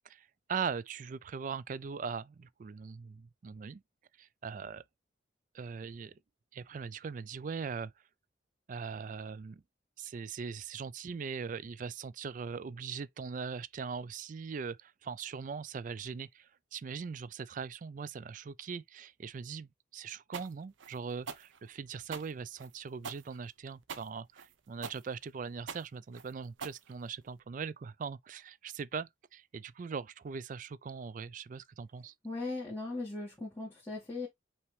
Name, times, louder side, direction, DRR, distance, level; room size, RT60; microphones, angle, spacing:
voice 1, 0.1-3.8 4.2-4.8 5.5-6.1 6.5-7.9 8.7-9.6 10.0-32.1, right 5 dB, 45° right, 0.3 m, -40 dB
sound 1, 20.3-27.4, right 6 dB, 85° right, 0.6 m, -45 dB
voice 2, 32.2-34.3, left 3 dB, 10° left, 1.9 m, -38 dB
5.7 x 2.9 x 3.2 m
head